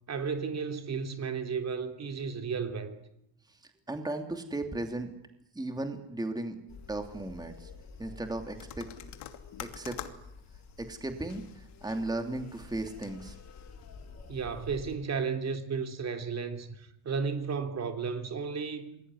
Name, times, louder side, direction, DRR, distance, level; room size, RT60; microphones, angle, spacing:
voice 1, 0.1-3.0 14.3-19.0, right 5 dB, 40° right, 3.2 m, -33 dB
voice 2, 3.9-5.1 5.5-6.6 6.9-7.7 8.0-8.9 9.6-10.0 10.8-13.3, right 2 dB, 10° right, 2.9 m, -36 dB
sound 1, 6.7-15.0, left 4 dB, 40° left, 5.8 m, -50 dB
sound 2, 8.6-14.4, left 11 dB, 85° left, 2.8 m, -48 dB
28.0 x 22.0 x 9.9 m
cardioid pair, 135°, 41 cm